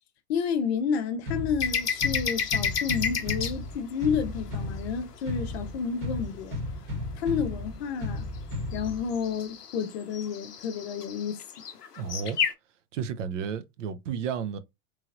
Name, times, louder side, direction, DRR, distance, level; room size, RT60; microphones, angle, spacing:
voice 1, 0.3-6.6 7.2-8.3 8.7-11.4, left 6 dB, 45° left, 0.6 m, -30 dB
sound 1, 1.3-9.3, left 2 dB, 25° right, 1.0 m, -35 dB
sound 2, 1.6-3.6 8.5-12.5, left 6 dB, 90° left, 0.6 m, -31 dB
voice 2, 11.9-12.4 12.9-14.6, right 7 dB, 55° right, 0.5 m, -32 dB
3.1 x 2.8 x 2.4 m
figure-of-eight pair, 95°, 46 cm